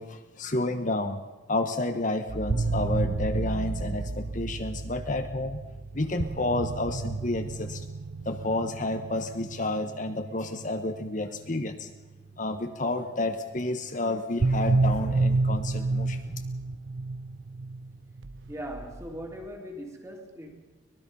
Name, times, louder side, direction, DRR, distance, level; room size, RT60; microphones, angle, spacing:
voice 1, 0.0-5.6 5.9-7.8 8.2-11.9 12.4-16.4, left 2 dB, 40° left, 6 dB, 1.1 m, -30 dB
sound 1, 2.3-12.4 14.4-19.5, right 3 dB, 75° right, 0.8 m, -30 dB
voice 2, 18.5-20.5, equal, 15° right, 2 dB, 2.7 m, -39 dB
24.0 x 19.5 x 5.5 m, 1.2 s
head